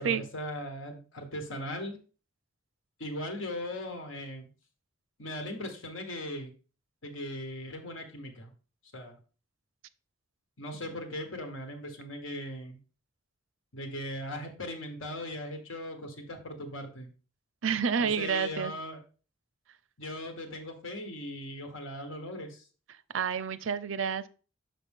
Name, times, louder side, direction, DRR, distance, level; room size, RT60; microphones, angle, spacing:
voice 1, 0.0-2.0 3.0-4.5 5.2-6.5 7.0-8.5 8.9-9.2 10.6-12.8 13.7-17.1 18.0-19.0 20.0-22.7, left 1 dB, 90° left, 4 dB, 1.5 m, -39 dB
voice 2, 17.6-18.7 23.1-24.3, right 6 dB, 80° right, 15 dB, 0.5 m, -29 dB
6.0 x 5.9 x 3.6 m, 0.36 s
head